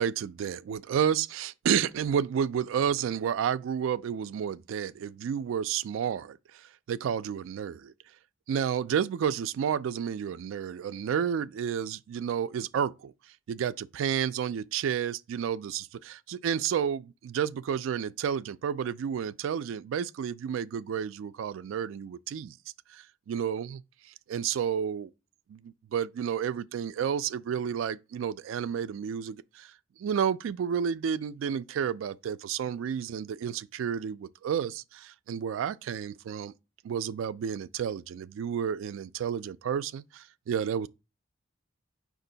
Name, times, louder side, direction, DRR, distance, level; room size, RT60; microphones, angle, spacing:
voice 1, 0.0-7.9 8.5-13.1 13.5-22.6 22.9-23.8 24.3-25.1 25.5-29.7 30.0-36.5 36.8-40.9, right 8 dB, 75° right, 0.3 m, -31 dB
5.3 x 2.5 x 3.8 m
head